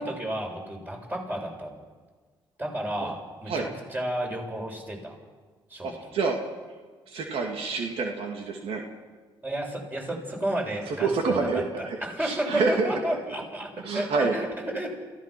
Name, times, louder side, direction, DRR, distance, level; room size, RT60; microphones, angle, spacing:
voice 1, 0.0-1.8 2.6-5.1 5.7-6.1 9.4-11.6 12.0-14.9, right 1 dB, 20° right, 0 dB, 7.1 m, -32 dB
voice 2, 5.8-6.4 7.1-8.8 10.9-13.2 13.8-14.4, right 4 dB, 75° right, 2 dB, 2.4 m, -28 dB
27.5 x 16.0 x 6.1 m, 1.4 s
cardioid pair, 80°, 10 cm